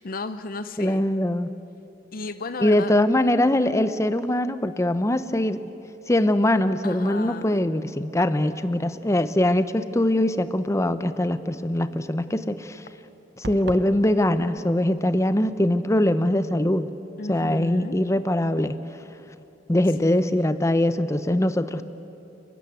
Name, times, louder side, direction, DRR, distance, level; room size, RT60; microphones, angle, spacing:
voice 1, 0.0-1.0 2.1-2.9 6.8-7.6 17.2-18.0 20.0-20.5, left 3 dB, 50° left, 11 dB, 0.7 m, -34 dB
voice 2, 0.8-1.5 2.6-5.6 6.1-12.8 13.4-16.9 17.3-18.8 19.7-21.8, left 1 dB, 15° left, 12 dB, 0.7 m, -22 dB
sound 1, 13.4-13.9, right 2 dB, 65° right, 1.2 m, -35 dB
29.5 x 13.5 x 9.4 m, 3.0 s
head